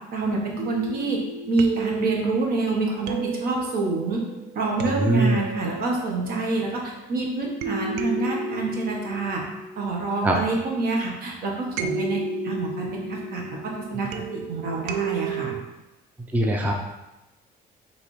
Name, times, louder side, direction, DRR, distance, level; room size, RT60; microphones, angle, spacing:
voice 1, 0.1-1.2 1.5-4.2 4.5-9.4 9.8-15.6, right 3 dB, 65° right, -1 dB, 1.1 m, -27 dB
sound 1, 0.6-7.0 7.6-10.6 11.8-15.6, right 3 dB, 90° right, 0.4 m, -33 dB
voice 2, 5.0-5.4 10.2-10.3 16.3-16.7, right 1 dB, 10° right, 1 dB, 0.5 m, -21 dB
5.0 x 3.2 x 3.2 m, 1.0 s
cardioid pair, 110°, 17 cm